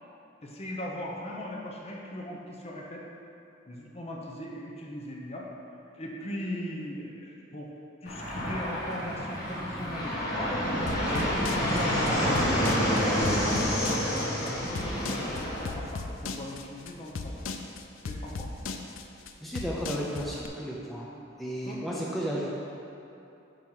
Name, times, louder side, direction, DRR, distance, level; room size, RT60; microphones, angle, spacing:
voice 1, 0.4-3.0 3.7-5.5 5.9-7.7 8.0-10.6 11.0-13.0 13.5-17.5 18.1-18.5 21.1-21.2 21.6-21.8, left 1 dB, 30° left, -2 dB, 0.8 m, -39 dB
Fixed-wing aircraft airplane, 8.1-15.7, equal, 50° left, 1.6 m, -28 dB
sound 1, 10.9-20.5, left 4 dB, 80° left, 0.5 m, -36 dB
voice 2, 19.4-21.1 21.4-22.5, equal, ahead, -6 dB, 0.6 m, -33 dB
9.0 x 3.1 x 5.6 m, 2.8 s
head